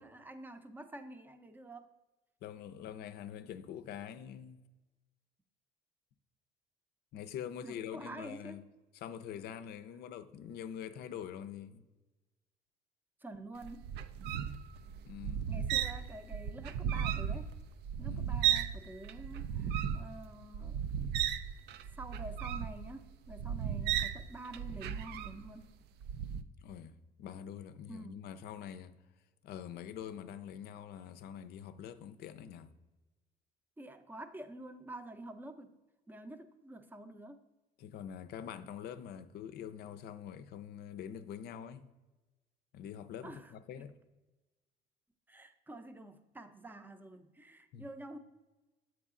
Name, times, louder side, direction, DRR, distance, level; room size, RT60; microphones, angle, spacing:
voice 1, 0.0-1.9 7.6-8.6 13.2-13.9 15.5-17.6 18.0-20.8 21.9-25.7 27.9-28.2 33.8-35.7 36.1-37.4 43.2-43.9 45.3-48.2, right 1 dB, 10° right, 0.5 m, -48 dB
voice 2, 2.4-4.6 7.1-8.6 9.0-11.8 15.1-15.5 18.1-18.4 26.6-29.0 29.4-32.8 37.8-41.9 42.7-43.9 47.7-47.9, left 9 dB, 70° left, 0.5 m, -45 dB
sound 1, 13.6-18.8 19.0-25.6 26.0-26.4, right 9 dB, 75° right, 0.4 m, -35 dB
7.0 x 4.7 x 3.7 m
cardioid pair, 110°, 17 cm